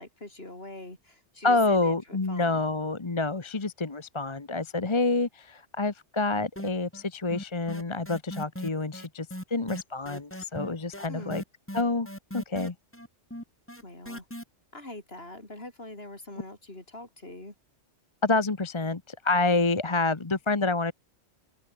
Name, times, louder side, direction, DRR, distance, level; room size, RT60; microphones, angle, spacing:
voice 1, 0.0-2.6 11.1-11.4 13.8-14.3 14.7-17.5, left 2 dB, 55° left, 5.5 m, -43 dB
voice 2, 1.4-11.4 11.7-12.1 12.3-12.7 18.2-20.9, left 3 dB, 25° left, 1.1 m, -27 dB
sound 1, 6.6-7.1 7.3-14.4, equal, 10° left, 5.1 m, -38 dB
open air
omnidirectional pair, 1.2 m